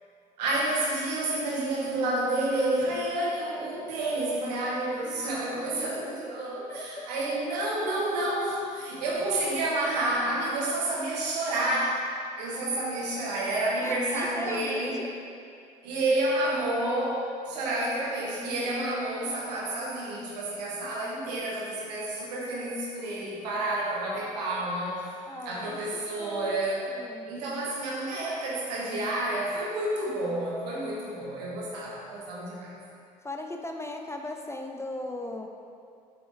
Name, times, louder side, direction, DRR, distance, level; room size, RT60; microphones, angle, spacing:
voice 1, 0.4-12.0 12.4-15.0 15.8-25.1 25.4-26.9 27.2-32.7, right 1 dB, 75° right, -5 dB, 1.4 m, -29 dB
voice 2, 6.7-7.1 13.8-15.2 25.3-25.8 26.2-26.6 26.9-27.3 33.2-35.5, left 1 dB, 15° left, 3 dB, 0.5 m, -37 dB
7.7 x 4.2 x 3.5 m, 2.4 s
hypercardioid pair, 60°, 21 cm